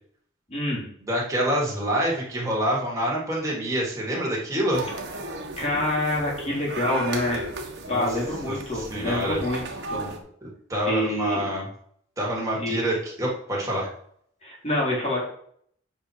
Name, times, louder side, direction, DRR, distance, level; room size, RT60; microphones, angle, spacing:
voice 1, 0.5-0.8 5.6-7.5 7.9-9.6 9.9-10.1 10.9-11.4 12.6-12.8 14.4-15.2, left 1 dB, 35° left, -4 dB, 3.7 m, -26 dB
voice 2, 1.0-4.9 7.8-8.1 8.5-9.4 10.4-11.7 12.2-13.9, equal, 15° right, -4 dB, 3.2 m, -27 dB
sound 1, 4.7-10.2, right 2 dB, 60° right, 1.5 m, -35 dB
8.3 x 5.5 x 5.0 m, 0.63 s
head